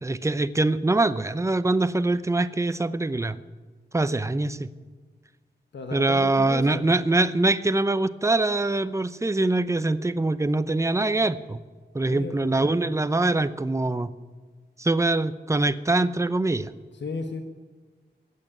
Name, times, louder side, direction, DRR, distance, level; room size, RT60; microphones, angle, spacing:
voice 1, 0.0-3.4 3.9-4.7 5.9-11.6 11.9-14.1 14.8-16.7, right 2 dB, 15° right, 13 dB, 0.6 m, -23 dB
voice 2, 5.7-6.9 12.1-12.7 16.9-17.4, left 4 dB, 80° left, 5 dB, 1.2 m, -35 dB
15.5 x 8.5 x 10.0 m, 1.4 s
wide cardioid pair, 110°, 18 cm